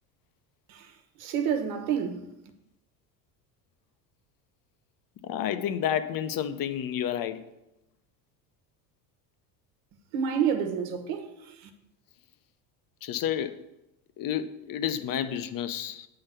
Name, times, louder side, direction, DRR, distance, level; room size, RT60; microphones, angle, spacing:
voice 1, 0.7-2.3 10.1-11.7, right 7 dB, 65° right, 1.3 m, -29 dB
voice 2, 5.2-7.5 13.0-13.6 14.2-16.1, left 9 dB, 45° left, 0.7 m, -30 dB
8.6 x 3.9 x 6.7 m
hypercardioid pair, 80°, 49 cm